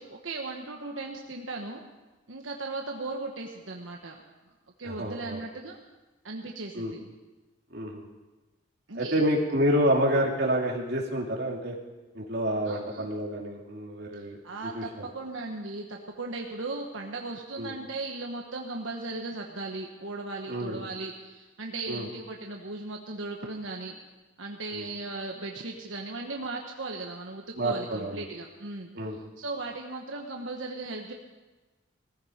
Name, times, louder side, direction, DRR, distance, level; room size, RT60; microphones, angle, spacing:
voice 1, 0.0-1.8 2.3-4.2 4.8-5.8 6.2-7.1 8.9-9.2 12.6-13.1 14.4-24.0 24.4-28.9 29.4-31.1, right 3 dB, 85° right, 1 dB, 1.3 m, -37 dB
voice 2, 4.8-5.4 6.7-6.9 7.7-8.0 8.9-11.7 12.1-14.4 14.6-15.1 17.6-17.7 20.5-20.9 21.9-22.1 24.7-24.9 27.6-28.3 28.9-29.2, equal, 55° right, -2 dB, 2.8 m, -28 dB
19.0 x 14.5 x 5.1 m, 1.2 s
head